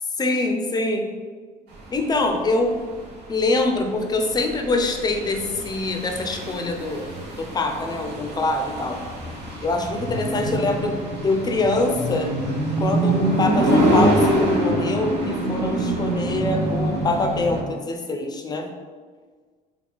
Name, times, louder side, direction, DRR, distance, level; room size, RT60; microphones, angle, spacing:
voice 1, 0.2-1.1 1.9-2.8 3.3-7.1 7.4-9.0 9.6-11.0 11.2-12.3 12.8-18.7, left 2 dB, 25° left, 4 dB, 0.4 m, -24 dB
sound 1, 1.8-17.6, right 1 dB, 75° right, 0.9 m, -25 dB
3.3 x 2.3 x 3.3 m, 1.5 s
cardioid pair, 110°, 17 cm